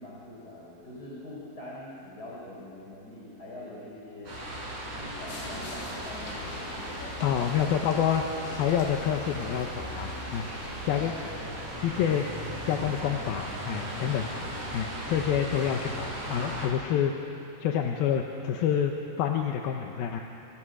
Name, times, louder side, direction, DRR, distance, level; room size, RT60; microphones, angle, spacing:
voice 1, 0.0-4.3 4.9-6.9 7.4-8.0 10.8-11.5, left 1 dB, 20° left, -5 dB, 4.1 m, -43 dB
sound 1, 4.2-16.7, right 1 dB, 45° right, 7.3 m, -37 dB
sound 2, 5.3-11.4, left 3 dB, 90° left, 5.2 m, -45 dB
voice 2, 7.2-8.2 8.6-10.5 10.8-11.1 11.8-12.3 12.7-14.3 14.7-17.3 17.6-20.2, left 9 dB, 70° left, 3 dB, 2.6 m, -28 dB
28.0 x 26.0 x 6.3 m, 2.8 s
omnidirectional pair, 5.1 m